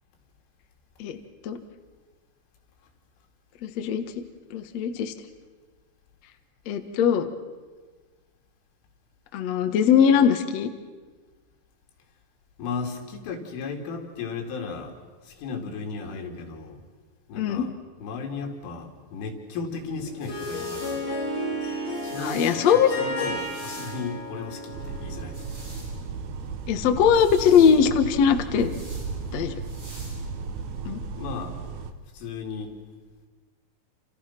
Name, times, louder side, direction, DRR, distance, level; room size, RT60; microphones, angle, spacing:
voice 1, 3.6-4.0 4.5-5.1 6.7-7.3 9.3-10.7 17.3-17.7 22.2-22.9 26.7-28.7 29.3-29.5 30.8-31.0, left 7 dB, 70° left, 7 dB, 1.6 m, -20 dB
voice 2, 12.6-14.9 15.2-16.8 17.3-17.7 18.0-21.0 22.0-22.7 23.0-25.4 31.2-31.6 32.1-32.7, left 5 dB, 90° left, 3 dB, 5.3 m, -35 dB
sound 1, 19.8-30.7, right 1 dB, 30° right, 8.5 m, -48 dB
Harp, 19.9-25.7, equal, 45° left, 9.4 m, -33 dB
sound 2, 24.7-31.9, right 5 dB, 70° right, 1.9 m, -35 dB
28.5 x 28.0 x 6.0 m, 1.4 s
omnidirectional pair, 5.5 m